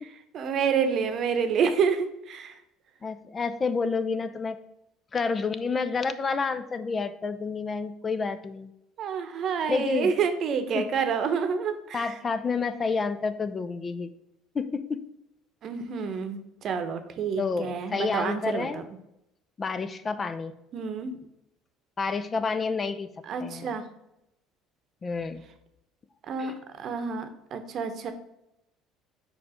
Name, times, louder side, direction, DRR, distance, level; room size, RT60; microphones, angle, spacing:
voice 1, 0.3-2.6 9.0-12.1 15.6-18.8 20.7-21.2 23.3-23.8 26.3-28.1, right 6 dB, 55° right, 9 dB, 0.8 m, -28 dB
voice 2, 3.0-4.6 5.1-8.7 9.7-10.1 10.7-10.9 11.9-14.1 14.5-15.0 17.4-18.8 19.6-20.5 22.0-23.1 23.4-23.7 25.0-25.4 26.4-26.5, left 4 dB, 35° left, 12 dB, 0.5 m, -29 dB
4.7 x 4.6 x 4.8 m, 0.84 s
hypercardioid pair, 70°, 0 cm